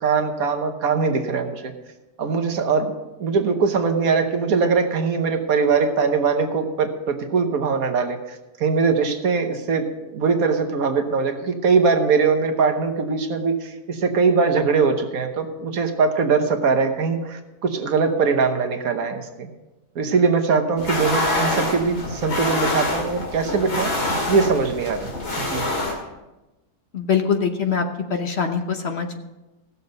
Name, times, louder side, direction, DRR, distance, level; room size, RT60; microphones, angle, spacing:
voice 1, 0.0-1.7 2.2-2.9 3.2-8.2 8.6-19.5 19.9-25.7, right 5 dB, 70° right, 6 dB, 1.5 m, -21 dB
sound 1, 20.8-25.9, left 2 dB, 85° left, 2.9 m, -25 dB
voice 2, 26.9-27.8 28.1-29.2, left 6 dB, 50° left, 5 dB, 1.0 m, -23 dB
16.5 x 6.9 x 5.3 m, 1.1 s
omnidirectional pair, 1.6 m